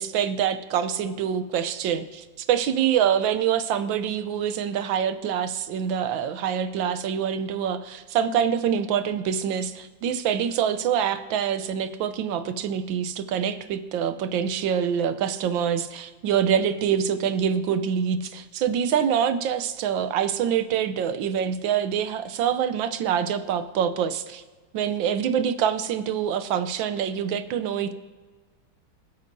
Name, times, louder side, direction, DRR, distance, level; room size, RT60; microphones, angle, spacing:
voice 1, 0.0-24.4 24.7-27.9, right 8 dB, 90° right, 11 dB, 1.4 m, -25 dB
24.5 x 8.2 x 2.7 m, 1.4 s
omnidirectional pair, 2.1 m